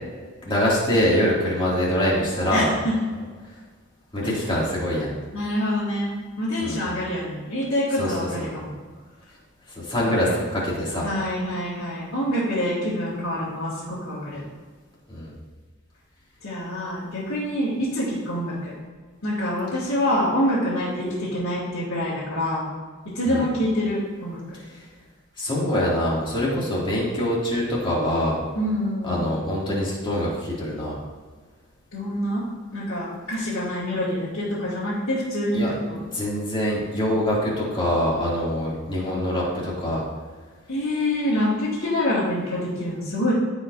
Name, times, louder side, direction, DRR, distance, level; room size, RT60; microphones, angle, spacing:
voice 1, 0.4-2.7 4.1-5.1 6.6-6.8 8.0-8.4 9.7-11.1 15.1-15.3 23.2-23.4 25.4-28.4 29.0-31.0 35.5-35.7 36.1-40.0, equal, 25° left, -6 dB, 2.6 m, -24 dB
voice 2, 2.5-3.0 4.2-4.6 5.3-8.7 10.0-10.4 10.9-14.4 16.4-18.7 19.2-22.6 23.1-24.4 28.5-29.3 31.9-32.4 32.7-36.0 40.7-43.3, left 1 dB, 80° left, -11 dB, 2.5 m, -26 dB
14.5 x 5.1 x 2.7 m, 1.5 s
head